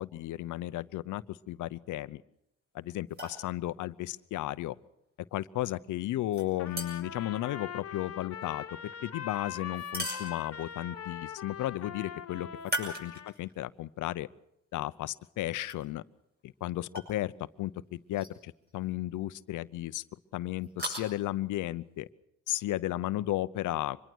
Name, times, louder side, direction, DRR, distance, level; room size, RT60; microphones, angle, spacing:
voice 1, 0.0-2.2 2.7-4.7 5.3-14.3 14.7-16.0 16.4-17.3 17.6-20.0 20.3-22.1 22.5-24.0, left 15 dB, 80° left, 15 dB, 0.8 m, -34 dB
sound 1, 3.1-3.4 6.3-7.2 9.7-10.8 12.6-13.6 14.1-14.2 15.6-15.8 17.0-17.1 18.1-18.4 18.7-18.8 20.6-21.0, equal, 30° right, 7.5 m, -38 dB
Trumpet, 6.6-13.3, left 8 dB, 50° left, 1.6 m, -42 dB
25.0 x 21.5 x 6.3 m, 0.77 s
cardioid pair, 90°, 30 cm